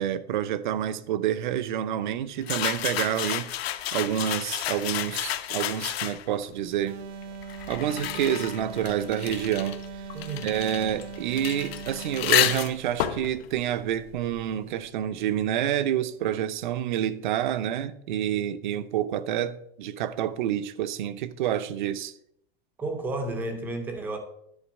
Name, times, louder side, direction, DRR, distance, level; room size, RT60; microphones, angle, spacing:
voice 1, 0.0-3.5 3.9-7.0 7.7-9.8 10.4-22.1, right 10 dB, 50° right, 0.6 m, -28 dB
sound 1, 2.4-6.4 7.2-14.6, left 12 dB, 75° left, 0.9 m, -31 dB
sound 2, 6.9-12.8, right 5 dB, 85° right, 1.0 m, -40 dB
voice 2, 10.1-10.5 22.8-24.2, right 2 dB, 5° right, 0.5 m, -32 dB
10.5 x 4.4 x 7.1 m
supercardioid pair, 180°, 31 cm